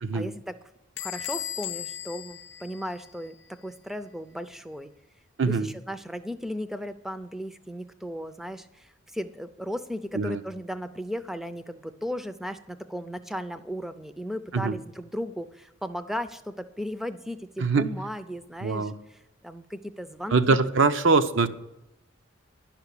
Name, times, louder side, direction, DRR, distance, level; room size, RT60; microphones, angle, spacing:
voice 1, 0.1-0.6 1.0-3.3 3.6-4.9 5.4-20.9, equal, ahead, 11 dB, 0.4 m, -36 dB
Bell / Door, 1.0-3.5, left 11 dB, 65° left, 0.6 m, -37 dB
voice 2, 18.6-18.9 20.3-21.5, right 4 dB, 65° right, 10 dB, 0.6 m, -23 dB
11.0 x 5.9 x 8.3 m, 0.90 s
head